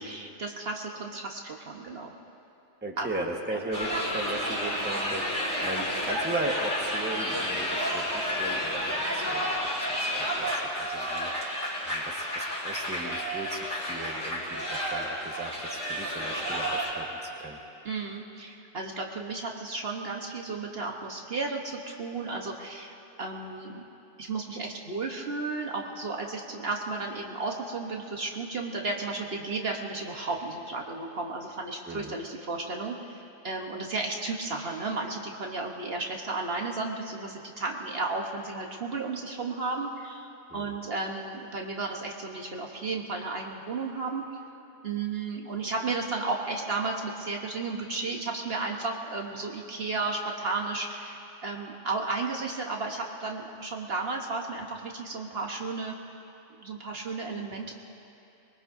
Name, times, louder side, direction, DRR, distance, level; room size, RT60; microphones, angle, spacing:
voice 1, 0.0-2.1 3.0-3.2 3.5-3.6 17.8-23.8 24.2-44.2 44.8-55.9 56.6-57.7, right 3 dB, 55° right, 1 dB, 1.3 m, -33 dB
voice 2, 2.8-9.6 10.0-11.3 11.8-17.6 31.9-32.1 40.5-40.7, right 2 dB, 10° right, 0 dB, 1.3 m, -37 dB
sound 1, 3.7-16.9, equal, 20° left, 4.4 m, -31 dB
23.5 x 22.0 x 2.7 m, 2.8 s
omnidirectional pair, 1.2 m